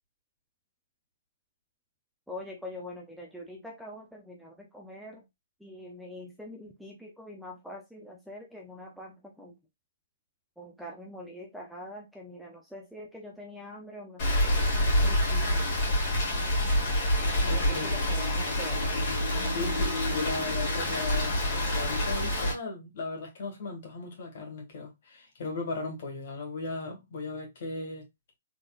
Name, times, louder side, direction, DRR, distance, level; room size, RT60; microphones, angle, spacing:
voice 1, 2.3-5.2 5.6-9.5 10.6-14.6 15.0-15.7 17.5-18.8, left 1 dB, ahead, 0.5 m, -44 dB
Rain, 14.2-22.5, left 1 dB, 35° left, 2.3 m, -27 dB
voice 2, 17.2-17.9 19.5-28.1, left 3 dB, 50° left, 1.9 m, -37 dB
3.7 x 3.6 x 2.4 m
hypercardioid pair, 165°, 0 cm